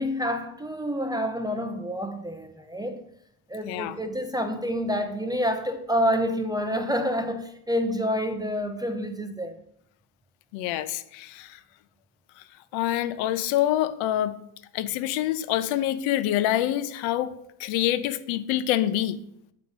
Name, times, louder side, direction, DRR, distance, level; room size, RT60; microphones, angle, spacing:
voice 1, 0.0-3.0 3.5-9.5, equal, 10° right, 0.4 m, -28 dB
voice 2, 3.6-4.0 10.5-11.6 12.7-14.3 14.7-17.3 17.6-19.2, left 12 dB, 85° left, 0.7 m, -26 dB
6.9 x 3.2 x 5.3 m
cardioid pair, 110°, 46 cm